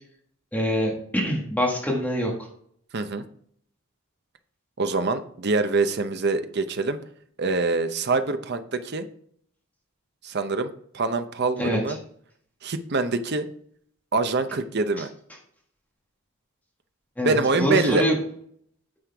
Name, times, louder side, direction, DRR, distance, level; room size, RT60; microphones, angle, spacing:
voice 1, 0.5-2.3 11.6-11.8 17.2-18.2, equal, 5° left, -1 dB, 1.6 m, -24 dB
voice 2, 2.9-3.2 4.8-7.0 7.4-9.1 10.2-12.0 12.6-13.5 14.1-15.1 17.2-18.0, right 3 dB, 50° right, 9 dB, 0.7 m, -25 dB
9.7 x 6.4 x 3.4 m, 0.63 s
head